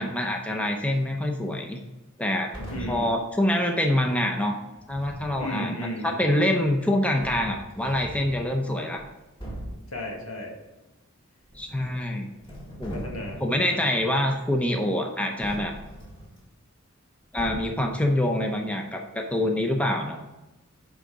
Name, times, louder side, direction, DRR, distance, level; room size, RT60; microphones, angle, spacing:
voice 1, 0.0-1.8 2.2-2.5 2.9-4.6 4.9-5.8 6.0-9.0 11.5-12.3 12.8-13.0 13.4-15.7 17.3-20.2, left 1 dB, 5° left, 2 dB, 0.6 m, -25 dB
sound 1, 2.5-3.1 4.8-5.4 6.6-6.7 7.2-8.4 8.9-9.0 9.4-9.9 11.4-12.1 12.4-13.5 15.4-16.4 17.4-17.9, right 1 dB, 25° left, 1.9 m, -39 dB
voice 2, 2.7-3.2 5.4-6.1 9.9-10.5 12.9-13.9, left 1 dB, 80° left, 0 dB, 1.8 m, -34 dB
9.8 x 3.9 x 5.0 m, 1.0 s
head